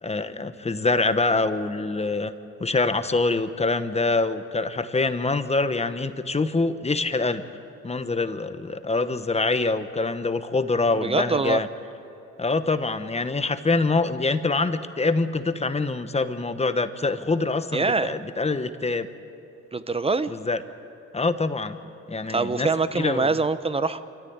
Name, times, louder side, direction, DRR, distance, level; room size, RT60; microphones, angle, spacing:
voice 1, 0.0-2.3 2.6-7.4 7.8-11.7 12.4-19.1 20.3-20.6 21.1-21.8 22.1-22.7 22.9-23.3, left 3 dB, 20° left, 10 dB, 1.1 m, -25 dB
voice 2, 10.9-11.6 17.7-18.1 19.7-20.3 22.3-24.0, right 3 dB, 20° right, 13 dB, 0.9 m, -24 dB
26.5 x 14.5 x 8.9 m, 2.9 s
cardioid pair, 90°, 30 cm